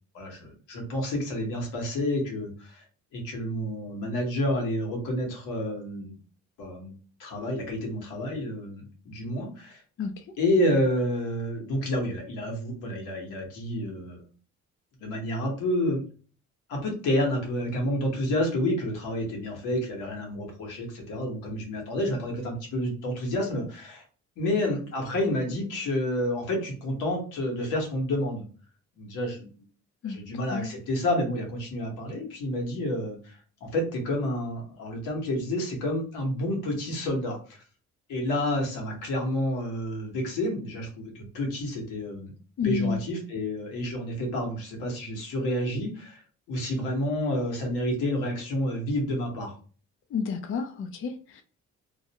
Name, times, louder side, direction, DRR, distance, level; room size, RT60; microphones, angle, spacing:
voice 1, 0.1-2.8 3.1-6.2 6.6-9.8 10.4-14.2 15.0-16.0 16.7-24.0 24.4-28.4 29.0-29.5 30.0-37.6 38.1-42.3 42.6-46.2 46.5-49.5, left 1 dB, 90° left, 0 dB, 1.1 m, -29 dB
voice 2, 42.6-43.0 50.1-51.4, left 5 dB, 45° left, 6 dB, 0.4 m, -30 dB
2.5 x 2.1 x 2.7 m, 0.38 s
cardioid pair, 90°, 30 cm